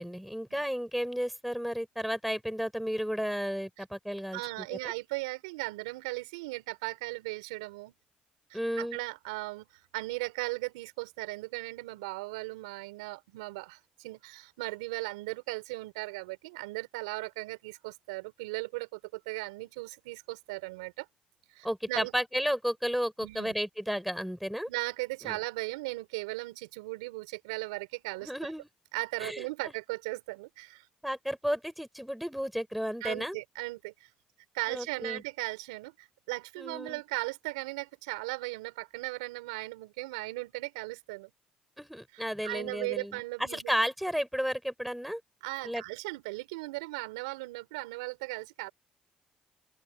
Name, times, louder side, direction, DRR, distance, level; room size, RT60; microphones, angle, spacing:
voice 1, 0.0-4.9 8.5-9.0 21.6-24.7 25.2-25.4 28.2-28.7 29.2-29.7 31.0-33.4 34.7-35.2 36.6-37.0 41.8-43.2 43.5-45.2 45.6-45.8, equal, ahead, 6.2 m, -33 dB
voice 2, 4.3-7.9 8.5-9.7 9.9-21.1 21.5-22.1 23.2-23.5 24.7-28.5 28.9-30.8 33.0-34.1 34.5-41.3 42.4-43.8 45.4-48.7, right 24 dB, 90° right, 4.8 m, -37 dB
open air
hypercardioid pair, 55°, 3 cm